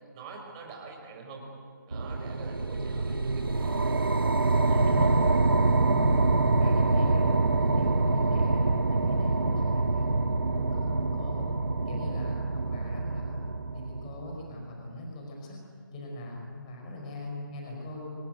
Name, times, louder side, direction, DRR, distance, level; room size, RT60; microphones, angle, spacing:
voice 1, 0.1-1.4 1.8-4.0 4.4-5.2 17.6-17.7, right 4 dB, 20° right, 1 dB, 4.9 m, -45 dB
sound 1, 1.9-14.4, right 3 dB, 85° right, 1.8 m, -25 dB
voice 2, 4.9-5.2 5.9-10.1 10.5-11.5 11.9-15.6 15.9-18.1, left 1 dB, 20° left, 0 dB, 5.1 m, -41 dB
26.0 x 19.0 x 9.3 m, 2.2 s
figure-of-eight pair, 165°, 12 cm